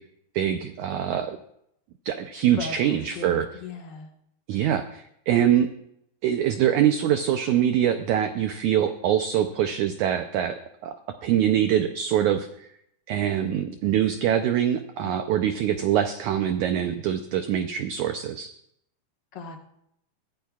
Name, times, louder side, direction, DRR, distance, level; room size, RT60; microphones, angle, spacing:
voice 1, 0.3-1.4 2.0-3.5 4.5-5.7 6.2-10.9 11.2-12.7 13.1-18.5, right 10 dB, 90° right, 7 dB, 1.7 m, -24 dB
voice 2, 2.5-4.1 15.0-15.2 19.3-19.6, left 4 dB, 60° left, 1 dB, 1.2 m, -38 dB
21.5 x 15.5 x 2.4 m, 0.75 s
omnidirectional pair, 4.3 m